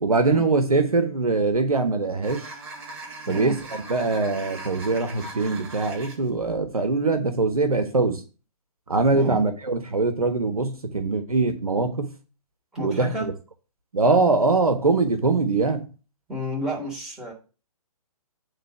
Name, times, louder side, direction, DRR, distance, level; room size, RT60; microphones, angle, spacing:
voice 1, 0.0-2.5 3.3-8.2 8.9-12.1 12.8-13.3 13.9-15.8, right 3 dB, 75° right, 1.4 m, -22 dB
sound 1, 2.2-6.3, right 3 dB, 40° right, 2.8 m, -39 dB
voice 2, 3.3-3.6 9.1-9.4 12.7-13.3 16.3-17.3, equal, 5° right, 3.7 m, -31 dB
9.2 x 3.9 x 6.9 m
figure-of-eight pair, 130°, 19 cm